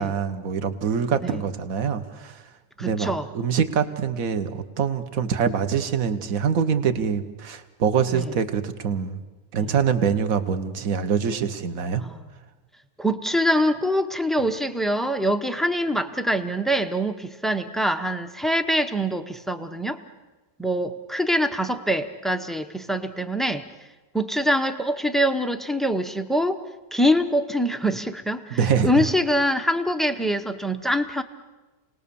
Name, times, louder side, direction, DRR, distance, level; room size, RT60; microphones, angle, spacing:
voice 1, 0.0-2.4 2.8-9.2 9.5-12.0 28.5-29.1, right 7 dB, 55° right, 10 dB, 1.6 m, -24 dB
voice 2, 2.8-3.3 8.1-8.3 9.5-9.7 12.0-12.2 13.0-20.0 20.6-23.7 24.1-26.6 26.9-31.2, equal, ahead, 8 dB, 0.3 m, -24 dB
29.0 x 19.5 x 7.0 m, 1.2 s
omnidirectional pair, 1.9 m